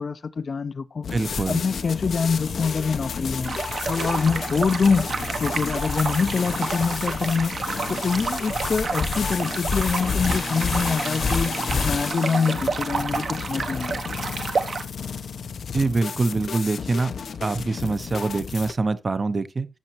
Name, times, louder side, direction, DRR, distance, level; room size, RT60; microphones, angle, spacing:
voice 1, 0.0-1.1 1.5-3.6 3.8-5.1 5.4-7.6 7.9-11.5 11.8-14.0, left 5 dB, 50° left, 0.4 m, -25 dB
sound 1, 1.0-18.7, left 6 dB, 90° left, 0.7 m, -34 dB
voice 2, 1.1-1.6 15.7-17.1 17.4-19.7, right 3 dB, 35° right, 0.6 m, -24 dB
sound 2, 1.3-12.1, left 5 dB, 70° left, 1.2 m, -31 dB
sound 3, 3.4-14.8, right 4 dB, 60° right, 0.9 m, -30 dB
13.5 x 6.4 x 3.0 m
wide cardioid pair, 175°, 0 cm